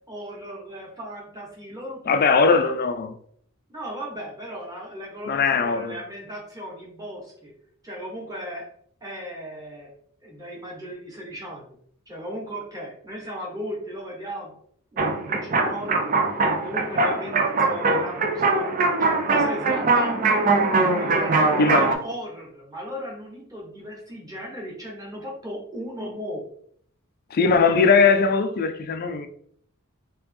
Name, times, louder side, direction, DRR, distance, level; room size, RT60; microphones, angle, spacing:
voice 1, 0.1-2.7 3.7-7.5 7.8-8.7 9.0-9.9 10.2-11.8 12.1-14.6 14.9-18.7 19.0-20.4 21.0-26.4, equal, 15° right, 1.0 m, -36 dB
voice 2, 2.1-3.1 5.3-6.0 21.6-21.9 27.3-29.3, left 4 dB, 45° left, 0.4 m, -20 dB
sound 1, 15.0-21.9, right 3 dB, 40° right, 0.4 m, -22 dB
3.2 x 2.9 x 3.3 m
head